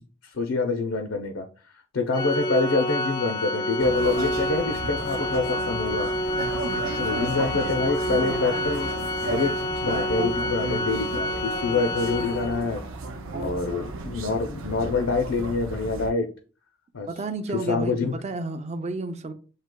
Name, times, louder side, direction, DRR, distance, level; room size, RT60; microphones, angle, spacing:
voice 1, 0.3-1.5 1.9-6.1 7.0-8.9 9.2-9.5 9.8-12.8 13.4-16.3 16.9-17.1 17.5-18.1, left 3 dB, 75° left, 0.5 m, -26 dB
Organ, 2.1-12.8, left 1 dB, 20° left, 0.4 m, -28 dB
sound 1, 3.8-16.1, right 3 dB, 85° right, 0.6 m, -34 dB
voice 2, 17.1-19.3, right 2 dB, 35° right, 0.5 m, -31 dB
7.5 x 2.7 x 2.2 m
head